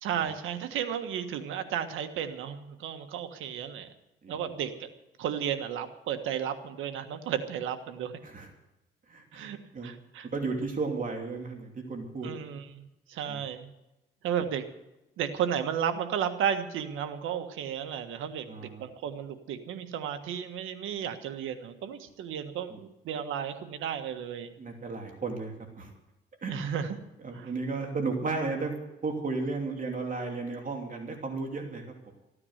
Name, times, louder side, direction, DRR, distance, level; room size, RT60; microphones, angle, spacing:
voice 1, 0.0-3.9 4.3-4.9 5.2-8.1 9.3-9.6 9.8-10.3 12.2-13.7 14.2-14.6 15.2-24.5 26.5-27.0 27.3-27.5, right 8 dB, 85° right, 8 dB, 1.5 m, -33 dB
voice 2, 9.1-9.9 10.3-12.6 13.3-13.4 18.5-18.8 22.7-22.8 24.6-25.9 26.4-26.8 27.2-28.7 29.0-32.1, right 3 dB, 40° right, 2 dB, 3.0 m, -34 dB
15.0 x 9.8 x 8.0 m, 0.93 s
cardioid pair, 90°, 20 cm